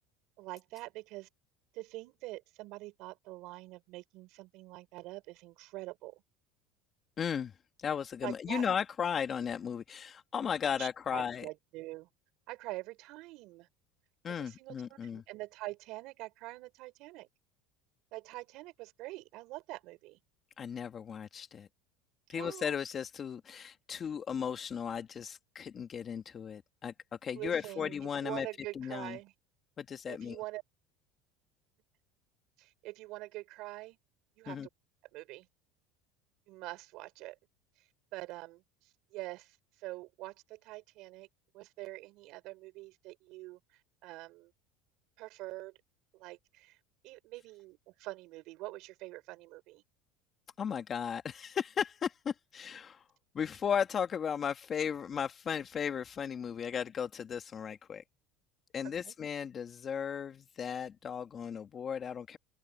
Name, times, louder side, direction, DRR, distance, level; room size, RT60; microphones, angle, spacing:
voice 1, 0.4-1.3 1.7-6.2 8.2-8.6 10.8-12.1 12.5-13.7 14.3-17.3 18.1-20.2 22.3-22.8 27.3-28.0 28.2-29.3 30.1-30.6 32.6-34.0 34.4-34.6 35.1-35.5 36.5-37.4 38.1-38.6 39.1-41.3 41.5-43.6 44.0-44.5 45.2-45.7 46.1-46.8 47.0-49.8 58.8-59.2, right 20 dB, 65° right, 5.3 m, -45 dB
voice 2, 7.2-7.5 7.8-11.5 14.2-15.2 20.6-21.7 22.3-26.9 27.2-28.5 28.7-29.2 29.8-30.4 34.5-34.7 50.6-53.0 53.3-58.0 58.7-62.4, left 7 dB, 30° left, 1.4 m, -35 dB
open air
supercardioid pair, 120°, 0 cm